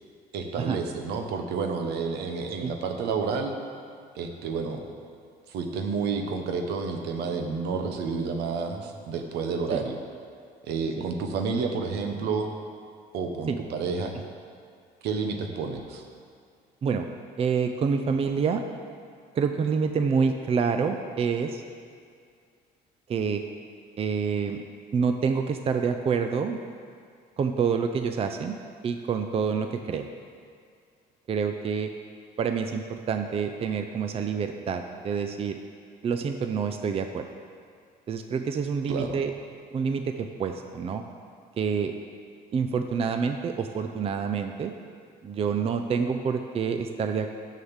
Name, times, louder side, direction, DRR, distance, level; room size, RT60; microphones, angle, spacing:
voice 1, 0.3-3.6 4.1-4.8 5.5-10.0 10.6-12.5 13.1-14.1 15.0-16.0 38.9-39.2, right 5 dB, 80° right, 5 dB, 1.0 m, -30 dB
voice 2, 17.4-18.6 19.3-21.6 23.1-23.4 24.0-24.6 24.9-26.6 27.4-28.6 28.8-30.1 31.3-31.9 32.4-35.6 36.0-37.2 38.1-39.3 39.7-41.0 41.6-41.9 42.5-44.7 45.2-47.3, right 6 dB, 35° right, 7 dB, 0.5 m, -27 dB
6.6 x 6.5 x 7.2 m, 2.2 s
cardioid pair, 110°, 17 cm